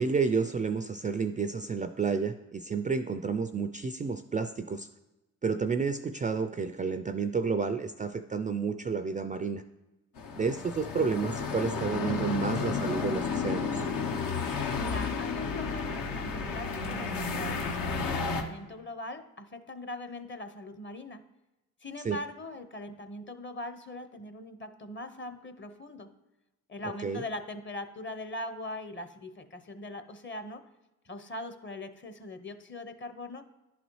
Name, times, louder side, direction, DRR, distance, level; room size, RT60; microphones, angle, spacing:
voice 1, 0.0-4.9 5.4-9.6 10.4-13.9 22.0-22.2 26.8-27.2, right 5 dB, 25° right, 10 dB, 0.3 m, -30 dB
sound 1, 10.2-18.4, left 4 dB, 70° left, 0.9 m, -32 dB
voice 2, 14.7-21.2 21.8-26.1 26.7-30.6 31.1-33.4, left 1 dB, 35° left, 9 dB, 0.8 m, -41 dB
11.0 x 4.0 x 3.1 m, 1.0 s
supercardioid pair, 55°, 35 cm